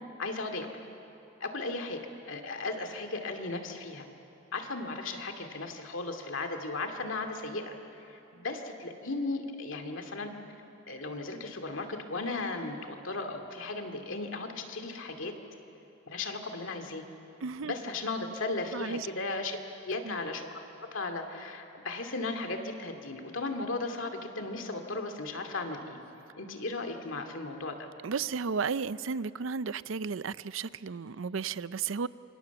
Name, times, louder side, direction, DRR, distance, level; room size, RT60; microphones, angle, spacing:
voice 1, 0.2-0.7 1.4-2.0 2.3-4.1 4.5-10.3 10.9-15.3 16.1-17.0 17.6-19.6 19.8-20.5 20.9-26.0 26.4-27.9, left 3 dB, 70° left, 5 dB, 2.4 m, -36 dB
voice 2, 17.4-17.7 18.7-19.1 20.0-20.2 28.0-32.1, right 5 dB, 75° right, 16 dB, 0.5 m, -33 dB
28.0 x 25.0 x 7.1 m, 3.0 s
head